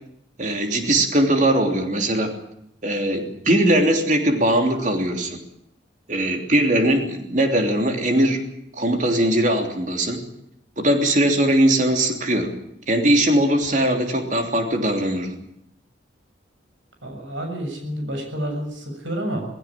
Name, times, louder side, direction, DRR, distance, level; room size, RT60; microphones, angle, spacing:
voice 1, 0.4-2.3 2.8-5.4 6.1-8.4 8.7-10.2 10.8-12.5 12.9-15.4, right 1 dB, 40° right, 5 dB, 3.1 m, -20 dB
voice 2, 17.0-19.5, equal, 85° right, 4 dB, 7.1 m, -29 dB
19.0 x 17.0 x 10.0 m, 0.77 s
head